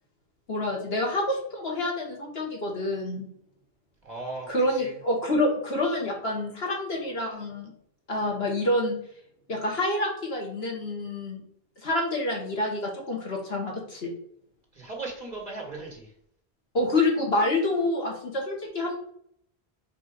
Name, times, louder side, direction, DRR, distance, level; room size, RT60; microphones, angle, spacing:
voice 1, 0.5-3.3 4.5-7.7 8.1-9.0 9.5-11.4 11.8-14.1 16.7-19.0, left 1 dB, 75° left, -1 dB, 1.9 m, -27 dB
voice 2, 4.0-4.9 5.8-6.0 14.7-16.1, right 3 dB, 40° right, -1 dB, 2.1 m, -38 dB
4.9 x 4.3 x 5.2 m, 0.67 s
omnidirectional pair, 1.0 m